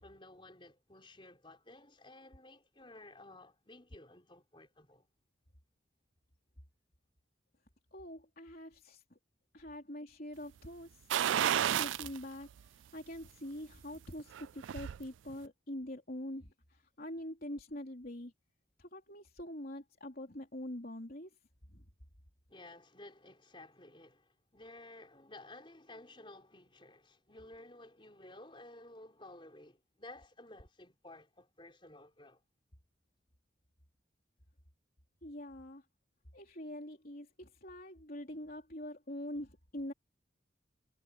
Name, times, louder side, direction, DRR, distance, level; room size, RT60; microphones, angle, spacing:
voice 1, 0.0-5.1 22.5-32.4, left 2 dB, 25° left, 4.2 m, -54 dB
voice 2, 7.9-9.0 9.5-18.3 18.8-21.3 21.7-21.8 35.2-35.8 36.3-39.9, left 1 dB, 50° left, 3.6 m, -45 dB
sound 1, 11.1-12.2 12.6-12.7 14.2-15.0 15.3-15.4, right 10 dB, 80° right, 0.3 m, -31 dB
head